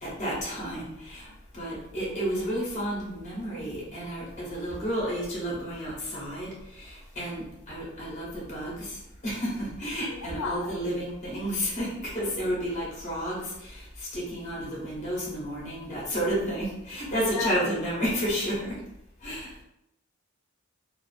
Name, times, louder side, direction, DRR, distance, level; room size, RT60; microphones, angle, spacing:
voice 1, 0.0-18.8 19.2-19.5, equal, 35° left, -5 dB, 0.8 m, -31 dB
voice 2, 10.1-10.7 17.3-17.5, left 4 dB, 80° left, 3 dB, 0.4 m, -33 dB
2.4 x 2.4 x 2.4 m, 0.83 s
head